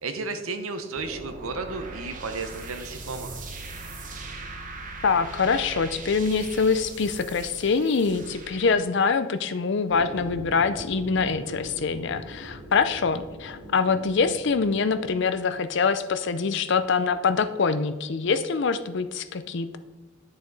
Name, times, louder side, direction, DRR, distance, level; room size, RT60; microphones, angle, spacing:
voice 1, 0.0-3.4, right 3 dB, 90° right, 7 dB, 1.0 m, -33 dB
sound 1, 0.9-8.7, right 3 dB, 40° right, 1.1 m, -40 dB
voice 2, 5.0-19.8, left 5 dB, 60° left, 12 dB, 0.5 m, -24 dB
sound 2, 9.9-15.9, equal, 40° left, 2.1 m, -42 dB
10.5 x 6.6 x 4.0 m, 1.2 s
head